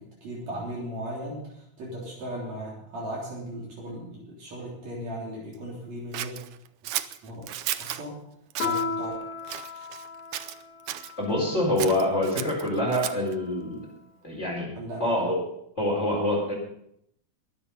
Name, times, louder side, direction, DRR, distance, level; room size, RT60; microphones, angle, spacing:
voice 1, 0.0-6.3 7.2-7.4 7.8-8.2 8.6-9.1 14.7-15.1, right 1 dB, 65° right, -4 dB, 4.7 m, -37 dB
Scissors, 6.1-8.0 8.5-8.8 9.4-10.1 10.3-11.1 11.8-13.3, right 12 dB, 90° right, 1.2 m, -34 dB
Piano, 8.6-13.6, left 4 dB, 85° left, 3.5 m, -36 dB
voice 2, 11.2-13.9 14.2-14.7 15.0-15.4 15.8-16.5, left 1 dB, 25° left, -3 dB, 4.6 m, -25 dB
21.5 x 7.9 x 5.4 m, 0.73 s
omnidirectional pair, 3.3 m